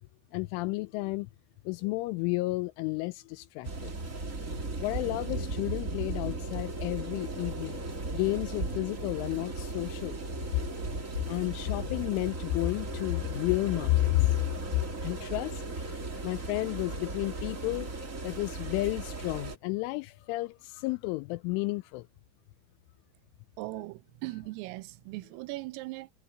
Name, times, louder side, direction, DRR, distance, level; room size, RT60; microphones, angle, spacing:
voice 1, 0.3-1.3 1.7-3.9 4.8-7.8 8.1-10.2 10.6-10.7 11.3-14.4 14.7-16.0 16.2-17.9 18.2-22.1, left 21 dB, 85° left, 2.8 m, -31 dB
sound 1, 3.6-19.5, right 2 dB, 55° right, 0.8 m, -37 dB
voice 2, 23.6-26.1, right 20 dB, 85° right, 3.4 m, -39 dB
omnidirectional pair, 5.9 m